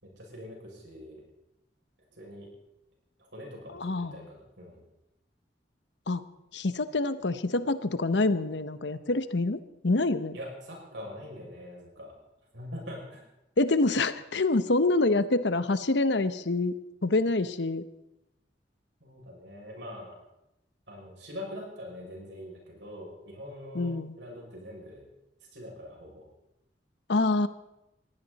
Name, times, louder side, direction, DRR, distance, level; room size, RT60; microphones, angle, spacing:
voice 1, 0.0-1.2 2.2-2.5 3.2-4.8 10.3-12.1 12.5-13.2 19.0-20.2 20.9-23.9 24.2-25.0 25.5-26.2, left 1 dB, 75° right, -1 dB, 6.5 m, -43 dB
voice 2, 3.7-4.2 6.1-6.2 6.5-10.4 13.6-17.8 23.7-24.1 27.1-27.5, left 2 dB, 75° left, 13 dB, 0.9 m, -26 dB
21.0 x 15.0 x 4.2 m, 0.89 s
head